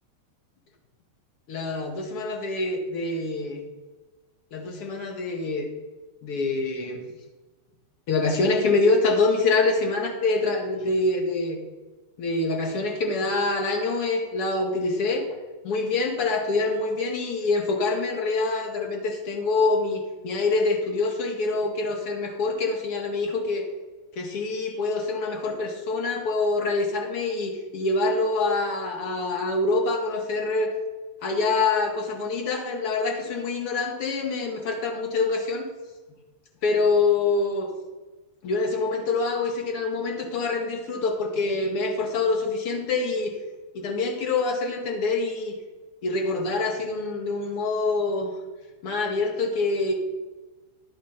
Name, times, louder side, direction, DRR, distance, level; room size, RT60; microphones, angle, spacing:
voice 1, 1.5-3.6 4.5-5.7 6.2-7.0 8.1-11.6 12.2-15.4 15.6-23.6 24.1-30.7 31.2-35.7 36.6-37.7 38.4-43.4 43.7-45.5 46.0-48.3 48.8-49.9, left 3 dB, 45° left, 1 dB, 1.6 m, -25 dB
10.5 x 5.1 x 5.5 m, 1.2 s
figure-of-eight pair, 90°, 0 cm